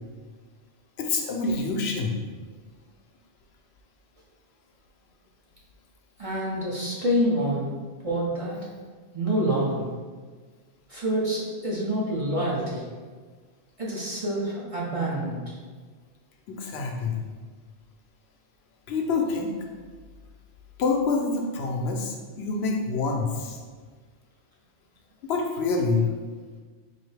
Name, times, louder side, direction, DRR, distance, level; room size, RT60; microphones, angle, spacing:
voice 1, 1.0-2.2 16.5-17.2 18.9-19.5 20.8-23.6 25.3-26.1, left 4 dB, 75° left, 2 dB, 0.8 m, -26 dB
voice 2, 6.2-7.7 8.0-8.6 9.1-9.9 10.9-12.8 13.8-15.6, right 1 dB, 40° right, -5 dB, 0.6 m, -27 dB
4.0 x 2.6 x 3.2 m, 1.5 s
omnidirectional pair, 1.1 m